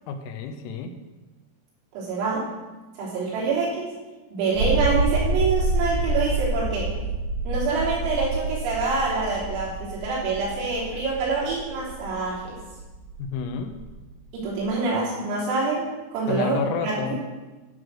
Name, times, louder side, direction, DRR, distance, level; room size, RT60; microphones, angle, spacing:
voice 1, 0.1-1.0 13.2-13.8 16.3-17.2, left 5 dB, 80° left, 6 dB, 3.4 m, -30 dB
voice 2, 2.0-2.5 3.0-3.9 4.3-6.9 7.5-12.6 14.3-17.2, right 4 dB, 85° right, -7 dB, 6.0 m, -26 dB
sound 1, 4.5-14.7, right 2 dB, 55° right, 2.0 m, -28 dB
11.5 x 6.4 x 6.3 m, 1.2 s
omnidirectional pair, 5.8 m